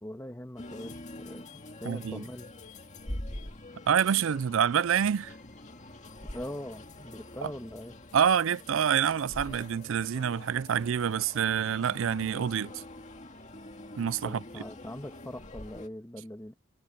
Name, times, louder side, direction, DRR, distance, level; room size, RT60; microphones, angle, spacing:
voice 1, 0.0-2.5 6.3-7.9 14.2-16.5, left 1 dB, 10° left, 1.5 m, -42 dB
sound 1, 0.6-15.9, left 1 dB, 35° left, 2.1 m, -45 dB
voice 2, 1.8-2.2 3.9-5.3 7.4-7.5 8.1-12.8 14.0-14.4, right 8 dB, 60° right, 0.4 m, -27 dB
head